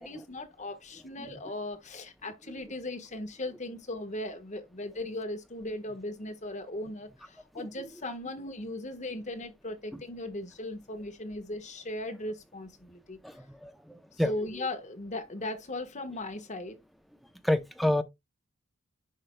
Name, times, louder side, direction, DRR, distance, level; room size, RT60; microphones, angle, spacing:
voice 1, 0.0-13.2 14.1-16.8, left 1 dB, 35° left, 1.3 m, -38 dB
voice 2, 13.2-14.3 17.4-18.0, left 1 dB, ahead, 0.6 m, -29 dB
10.5 x 4.5 x 2.2 m
head